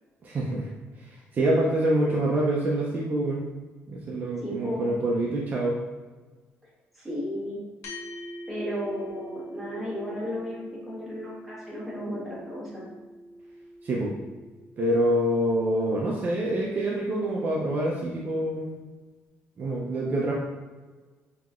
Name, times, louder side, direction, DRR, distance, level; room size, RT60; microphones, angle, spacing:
voice 1, 0.2-0.7 1.0-3.4 3.9-5.8 13.8-14.1 14.8-18.7 19.6-20.3, right 1 dB, 35° right, -3 dB, 0.5 m, -26 dB
voice 2, 4.4-4.9 6.6-7.6 8.5-12.9, equal, ahead, -8 dB, 1.3 m, -34 dB
sound 1, 7.8-16.5, equal, 90° left, 0.9 m, -44 dB
5.7 x 2.8 x 2.4 m, 1.3 s
cardioid pair, 150°, 5 cm